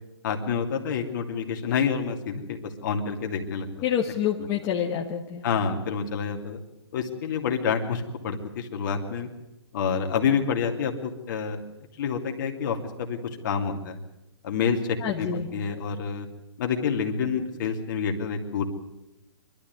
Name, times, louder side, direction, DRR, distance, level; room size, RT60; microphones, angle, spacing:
voice 1, 0.2-3.7 5.4-6.6 6.9-9.3 9.7-11.6 12.0-13.2 13.4-14.0 14.4-14.8 15.2-16.3 16.6-18.6, left 6 dB, 45° left, 4 dB, 2.6 m, -28 dB
voice 2, 3.8-5.4 15.0-15.5, left 9 dB, 20° left, -1 dB, 1.3 m, -27 dB
24.0 x 12.5 x 9.5 m, 0.94 s
hypercardioid pair, 160°, 15 cm